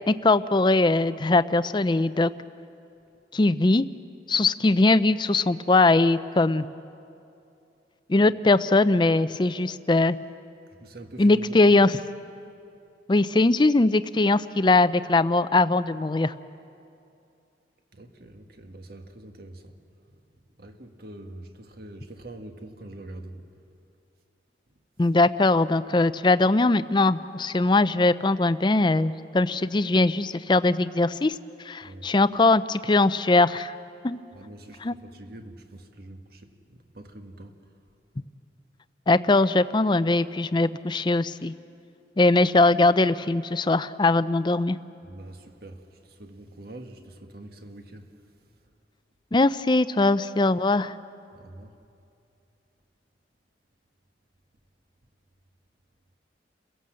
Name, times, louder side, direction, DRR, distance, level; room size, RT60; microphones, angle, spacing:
voice 1, 0.1-2.3 3.3-3.9 4.3-6.7 8.1-10.2 11.2-11.9 13.1-16.3 25.0-31.3 31.7-33.7 34.0-34.2 34.8-34.9 39.1-41.5 42.2-44.8 49.3-50.9, left 2 dB, 25° left, 14 dB, 0.5 m, -21 dB
voice 2, 10.8-11.8 17.9-19.8 20.1-20.2 20.6-23.4 31.8-32.1 34.3-37.6 45.0-48.1 51.3-51.8, right 1 dB, 55° right, 6 dB, 1.7 m, -44 dB
29.0 x 16.5 x 7.6 m, 2.7 s
head